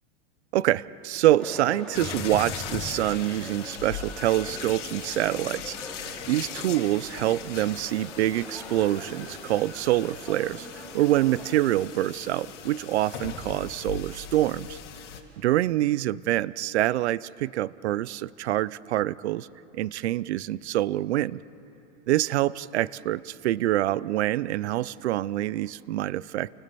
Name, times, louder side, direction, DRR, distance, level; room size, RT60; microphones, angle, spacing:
voice 1, 0.5-5.8 6.0-14.8 15.4-19.5 19.7-21.4 22.1-26.5, right 14 dB, 65° right, 20 dB, 0.6 m, -26 dB
sound 1, 1.4-11.6, left 1 dB, ahead, 2.8 m, -43 dB
sound 2, 1.9-15.2, left 8 dB, 80° left, 2.4 m, -39 dB
29.0 x 19.5 x 6.9 m, 2.9 s
supercardioid pair, 175°, 36 cm